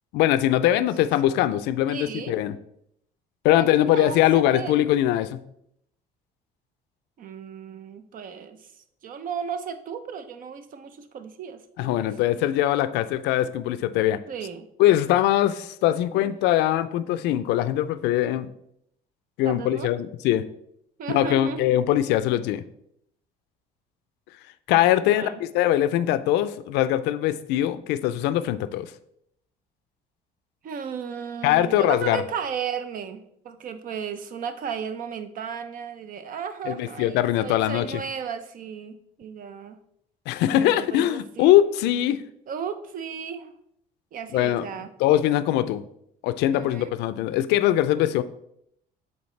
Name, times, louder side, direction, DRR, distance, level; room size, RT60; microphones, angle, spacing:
voice 1, 0.1-2.5 3.4-5.4 11.8-14.2 14.8-18.5 19.4-20.4 21.1-22.6 24.7-28.9 31.4-32.2 36.7-38.0 40.3-42.2 44.3-44.6 45.0-45.8 46.2-48.2, left 13 dB, 90° left, 13 dB, 0.4 m, -22 dB
voice 2, 1.9-2.4 3.5-4.8 7.2-8.7 9.0-12.1 14.3-14.7 16.1-16.3 19.4-19.9 21.0-21.6 25.0-25.4 30.6-39.8 40.5-41.5 42.5-43.5 44.1-44.9 46.5-46.9, right 7 dB, 55° right, 10 dB, 0.6 m, -35 dB
7.0 x 4.1 x 3.2 m, 0.73 s
cardioid pair, 110°, 17 cm